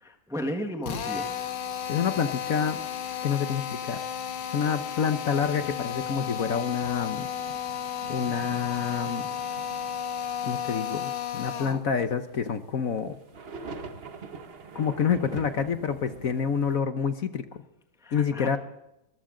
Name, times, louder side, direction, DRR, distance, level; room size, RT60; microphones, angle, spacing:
voice 1, 0.0-1.3 18.0-18.6, equal, ahead, 4 dB, 1.2 m, -34 dB
Drill, 0.8-11.9, left 8 dB, 70° left, 1.9 m, -33 dB
sound 1, 1.4-16.8, right 4 dB, 40° right, 1.0 m, -46 dB
voice 2, 1.9-2.8 3.2-4.0 4.5-7.3 8.1-9.3 10.4-13.2 14.7-17.6 18.1-18.6, left 7 dB, 55° left, 9 dB, 1.1 m, -28 dB
24.5 x 15.0 x 3.8 m, 0.86 s
omnidirectional pair, 2.1 m